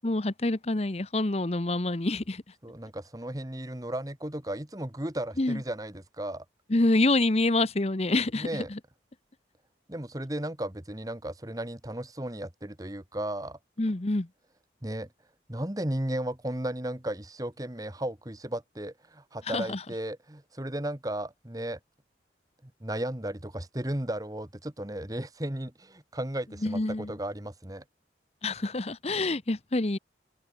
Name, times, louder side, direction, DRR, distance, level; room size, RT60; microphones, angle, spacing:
voice 1, 0.0-2.4 5.4-5.6 6.7-8.8 13.8-14.3 19.5-19.8 26.6-27.1 28.4-30.0, left 2 dB, 35° left, 0.9 m, -27 dB
voice 2, 2.6-6.4 8.3-8.7 9.9-13.6 14.8-15.1 15.5-21.8 22.8-27.8, right 1 dB, 20° right, 1.5 m, -35 dB
open air
head